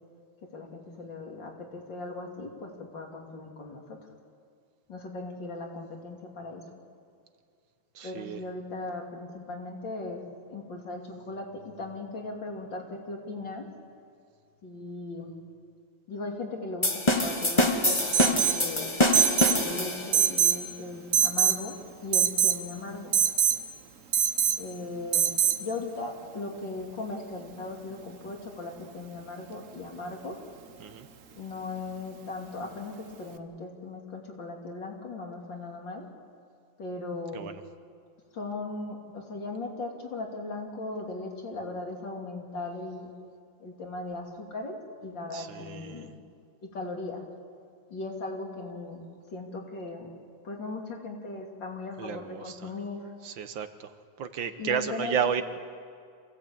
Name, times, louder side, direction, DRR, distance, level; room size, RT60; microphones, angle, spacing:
voice 1, 0.5-4.0 4.9-6.6 8.0-13.7 14.6-15.3 16.1-18.9 19.5-23.2 24.6-25.3 25.6-30.4 31.3-36.1 36.8-37.5 38.3-43.1 43.6-46.1 46.6-47.2 47.9-50.1 50.4-53.1 54.6-55.4, left 2 dB, 65° left, 1 dB, 3.5 m, -38 dB
voice 2, 8.0-8.4 30.8-31.1 37.3-37.6 45.3-46.1 52.0-52.7 53.2-53.9 54.2-55.4, right 7 dB, 70° right, 10 dB, 1.7 m, -32 dB
sound 1, 16.8-20.3, left 1 dB, 15° left, 1.4 m, -25 dB
Alarm, 18.1-18.6 19.1-19.6 20.1-20.6 21.1-21.6 22.1-22.6 23.1-23.6 24.1-24.6 25.1-25.6, right 9 dB, 50° right, 1.2 m, -23 dB
26.5 x 16.0 x 8.7 m, 2.3 s
omnidirectional pair, 2.2 m